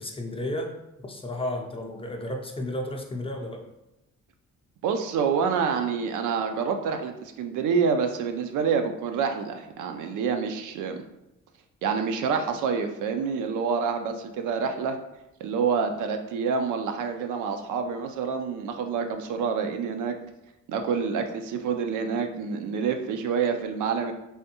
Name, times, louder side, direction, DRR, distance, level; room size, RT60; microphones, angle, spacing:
voice 1, 0.0-3.6, left 1 dB, 20° left, 2 dB, 0.5 m, -33 dB
voice 2, 4.8-11.0 11.8-15.0 15.4-20.2 20.7-24.1, right 6 dB, 80° right, 6 dB, 0.5 m, -27 dB
3.5 x 2.6 x 2.8 m, 0.90 s
cardioid pair, 90°, 30 cm